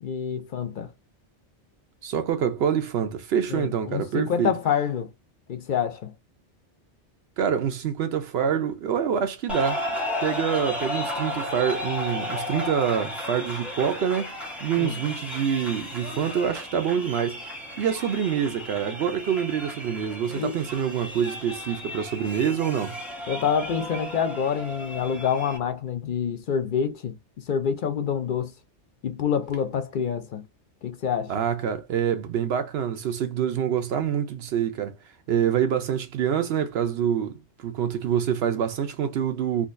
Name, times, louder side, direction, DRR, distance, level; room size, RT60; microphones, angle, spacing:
voice 1, 0.0-0.9 3.5-5.1 5.5-6.1 14.8-15.0 20.3-20.6 23.3-28.5 29.0-30.4 30.8-31.4, left 7 dB, 60° left, 0.6 m, -27 dB
voice 2, 2.0-4.5 7.4-9.8 10.2-14.3 14.6-17.4 17.8-23.0 31.3-35.0 35.3-39.7, right 8 dB, 65° right, 0.8 m, -26 dB
sound 1, 9.5-25.6, left 1 dB, ahead, 0.9 m, -34 dB
3.7 x 2.3 x 2.5 m
omnidirectional pair, 1.2 m